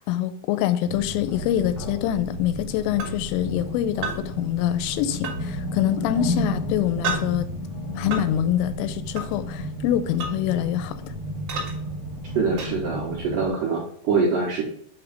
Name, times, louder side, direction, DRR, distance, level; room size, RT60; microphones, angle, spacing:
voice 1, 0.0-7.5 8.0-10.9, left 11 dB, 85° left, 11 dB, 3.1 m, -25 dB
sound 1, 0.8-13.5, left 1 dB, 55° left, 1.4 m, -32 dB
sound 2, 3.0-3.1 4.0-4.2 5.2-5.4 7.0-7.2 8.1-8.2 9.2-9.3 10.2-10.4 11.5-11.7 12.6-12.7, right 4 dB, 40° right, 2.4 m, -29 dB
voice 2, 12.3-14.6, right 4 dB, 80° right, -6 dB, 1.8 m, -24 dB
8.1 x 3.1 x 5.1 m, 0.63 s
omnidirectional pair, 5.6 m